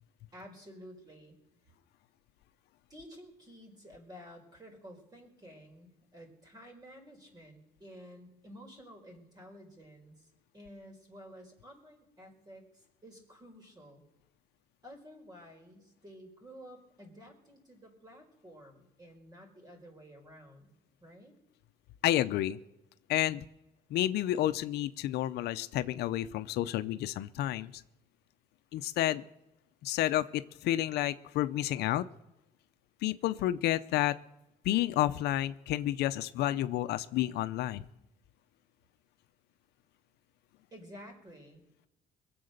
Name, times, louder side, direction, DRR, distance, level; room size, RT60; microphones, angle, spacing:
voice 1, 0.3-1.4 2.9-14.0 14.8-21.4 40.7-41.7, equal, 25° right, 2 dB, 4.9 m, -52 dB
voice 2, 22.0-22.6 23.1-23.4 23.9-27.8 28.7-29.2 29.8-32.1 33.0-34.1 34.6-37.8, left 14 dB, 80° left, 12 dB, 0.7 m, -30 dB
22.5 x 7.9 x 6.6 m, 0.94 s
cardioid pair, 110°, 17 cm